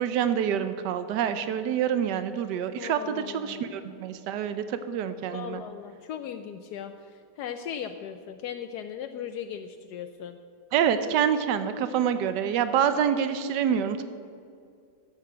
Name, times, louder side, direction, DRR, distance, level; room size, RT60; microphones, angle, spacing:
voice 1, 0.0-5.6 10.7-14.0, right 8 dB, 85° right, 11 dB, 1.3 m, -26 dB
voice 2, 2.8-3.9 5.3-10.4, left 8 dB, 75° left, 7 dB, 1.1 m, -38 dB
12.0 x 7.5 x 7.8 m, 2.3 s
omnidirectional pair, 1.8 m